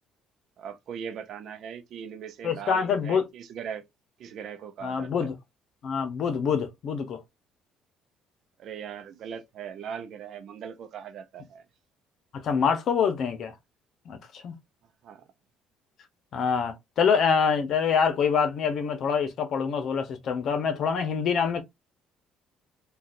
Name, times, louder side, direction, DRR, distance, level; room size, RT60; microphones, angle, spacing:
voice 1, 0.6-3.9 4.2-5.3 8.6-11.6 15.0-15.3, right 7 dB, 60° right, 0.6 m, -39 dB
voice 2, 2.4-3.2 4.8-5.3 5.8-7.2 12.3-13.5 14.1-14.5 16.3-21.6, left 6 dB, 60° left, 0.9 m, -25 dB
3.8 x 2.4 x 2.6 m
cardioid pair, 100°, 0 cm